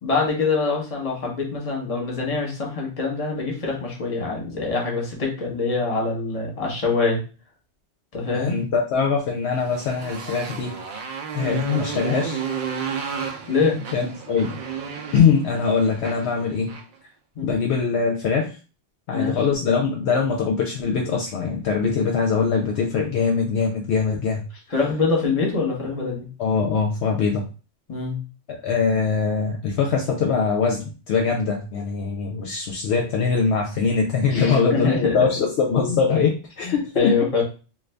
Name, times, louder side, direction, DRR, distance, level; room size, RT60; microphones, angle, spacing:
voice 1, 0.0-7.2 8.1-8.6 11.4-11.6 13.5-13.8 17.4-17.5 19.1-19.4 24.7-26.3 27.9-28.2 34.3-35.3 36.6-37.4, left 4 dB, 35° left, -1 dB, 0.9 m, -24 dB
voice 2, 8.3-10.7 11.3-12.4 13.9-14.6 15.1-16.8 17.4-18.6 19.1-24.4 26.4-27.4 28.5-37.2, left 5 dB, 70° left, 1 dB, 0.8 m, -22 dB
Motorcycle, 9.5-16.9, right 6 dB, 55° right, 0.6 m, -32 dB
2.5 x 2.4 x 3.3 m, 0.34 s
omnidirectional pair, 1.2 m